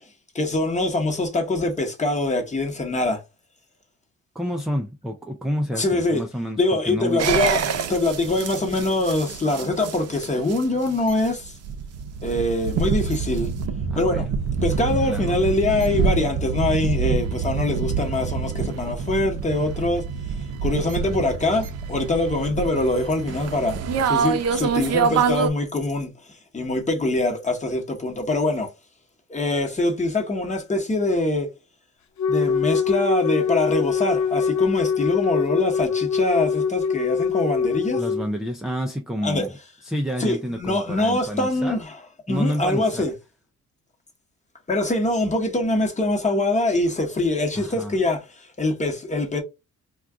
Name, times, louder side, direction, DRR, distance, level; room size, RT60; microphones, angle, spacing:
voice 1, 0.3-3.2 5.7-6.2 6.6-11.5 12.2-13.5 13.9-14.2 14.6-20.0 20.6-23.8 24.0-28.7 29.3-31.5 32.3-38.0 39.2-39.4 40.2-42.0 42.3-43.1 44.7-49.4, left 2 dB, 25° left, 1.0 m, -24 dB
voice 2, 4.3-6.6 6.8-7.3 13.9-14.3 15.0-15.4 37.9-39.5 39.8-41.8 42.3-43.1 47.6-48.0, equal, ahead, 0.4 m, -29 dB
sound 1, 7.2-25.5, right 6 dB, 55° right, 0.6 m, -26 dB
Wind instrument woodwind instrument, 32.2-38.3, left 6 dB, 65° left, 0.5 m, -23 dB
2.5 x 2.3 x 3.5 m
cardioid pair, 90°, 30 cm